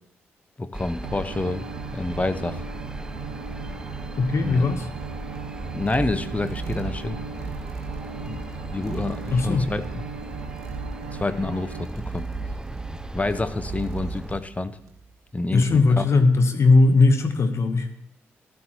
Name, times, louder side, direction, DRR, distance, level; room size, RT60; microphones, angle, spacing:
voice 1, 0.6-1.7 1.9-2.6 4.4-4.7 5.7-7.2 8.3-8.4 8.7-10.0 11.1-12.3 13.1-14.8 15.3-16.1, left 2 dB, 25° left, 12 dB, 0.8 m, -28 dB
sound 1, 0.7-14.4, right 1 dB, 10° right, 0.5 m, -37 dB
sound 2, 1.0-11.9, right 7 dB, 85° right, 0.5 m, -39 dB
voice 2, 4.2-4.9 9.3-9.7 15.5-18.0, left 3 dB, 50° left, 7 dB, 1.2 m, -19 dB
sound 3, 5.0-15.1, right 4 dB, 65° right, 1.3 m, -37 dB
15.0 x 12.5 x 3.1 m, 0.74 s
hypercardioid pair, 40°, 6 cm